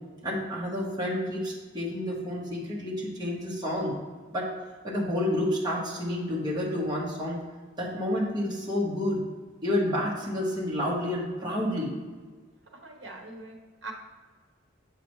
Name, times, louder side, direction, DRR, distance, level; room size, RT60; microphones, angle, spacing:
voice 1, 0.2-3.9 4.3-4.5 4.8-7.4 7.8-9.2 9.6-11.9, left 1 dB, 20° right, -5 dB, 1.3 m, -29 dB
voice 2, 12.8-13.9, right 3 dB, 65° right, 2 dB, 1.0 m, -42 dB
7.5 x 4.9 x 3.1 m, 1.4 s
head